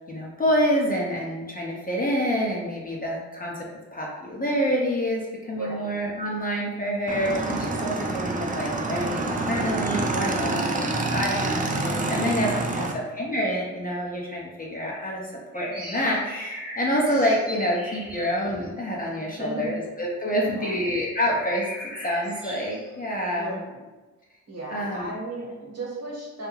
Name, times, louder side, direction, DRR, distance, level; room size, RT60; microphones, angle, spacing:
voice 1, 0.1-3.5 3.9-12.9 13.2-15.2 15.5-21.7 22.0-23.6 24.7-25.1, equal, 25° left, -3 dB, 0.6 m, -27 dB
voice 2, 5.5-5.9 10.6-11.0 12.6-13.0 19.2-19.7 20.3-20.8 23.3-23.8 24.5-26.5, right 2 dB, 45° right, -4 dB, 1.2 m, -36 dB
Motorcycle / Engine, 7.1-12.9, right 2 dB, 25° right, 0.4 m, -27 dB
sound 1, 15.5-19.5 20.0-20.1 20.4-22.9, equal, 5° right, 0.9 m, -39 dB
2.4 x 2.2 x 3.0 m, 1.2 s
supercardioid pair, 45°, 37 cm